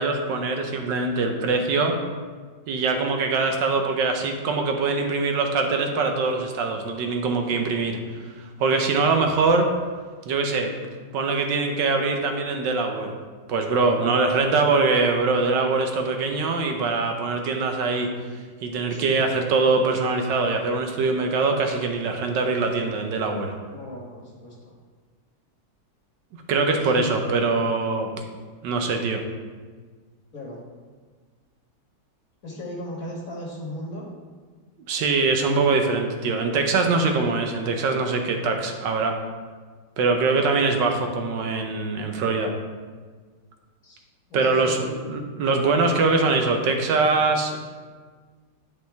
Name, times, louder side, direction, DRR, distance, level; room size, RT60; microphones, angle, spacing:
voice 1, 0.0-2.0 2.7-8.0 8.6-9.7 10.3-10.7 11.1-13.1 13.5-18.1 18.6-23.5 26.5-28.1 28.6-29.2 34.9-39.2 40.0-42.5 44.3-44.8 45.1-47.6, right 3 dB, 85° right, 4 dB, 1.5 m, -23 dB
voice 2, 7.5-8.0 13.9-14.2 18.9-19.2 23.7-24.7 26.8-27.1 30.3-30.6 32.4-34.1 40.3-40.6 43.8-44.0 44.3-45.0, left 1 dB, 50° left, -4 dB, 2.0 m, -37 dB
9.7 x 5.3 x 3.5 m, 1.5 s
omnidirectional pair, 1.9 m